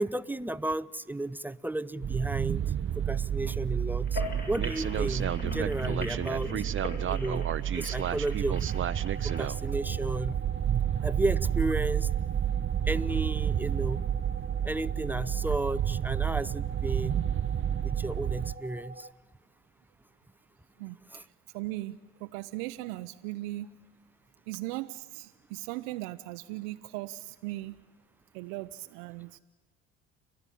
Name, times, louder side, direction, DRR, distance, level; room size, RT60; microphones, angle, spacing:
voice 1, 0.0-4.2 4.5-6.5 7.1-7.5 7.8-8.7 9.2-10.4 11.0-12.1 12.9-14.0 14.6-17.3 17.8-19.1 21.1-21.2, right 2 dB, 5° right, 16 dB, 0.7 m, -33 dB
sound 1, 2.0-18.5, right 10 dB, 40° right, 0.7 m, -30 dB
sound 2, 4.0-9.4, left 1 dB, 30° left, 7.9 m, -40 dB
sound 3, 8.7-19.1, right 2 dB, 20° right, 1.2 m, -46 dB
voice 2, 21.5-23.7 24.5-27.7 28.3-29.4, right 18 dB, 80° right, 8 dB, 0.7 m, -38 dB
30.0 x 13.0 x 9.9 m, 1.3 s
hypercardioid pair, 60°, 33 cm